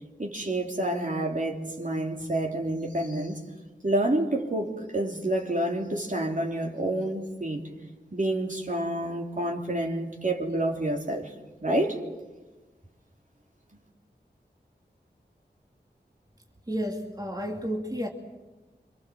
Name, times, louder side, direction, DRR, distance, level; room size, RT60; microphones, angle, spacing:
voice 1, 0.2-3.4 3.8-7.7 8.1-11.3 11.6-12.0, right 1 dB, 45° right, 1 dB, 3.5 m, -28 dB
voice 2, 16.7-18.1, equal, 20° right, 0 dB, 2.5 m, -31 dB
27.5 x 25.5 x 7.7 m, 1.2 s
wide cardioid pair, 75°, 18 cm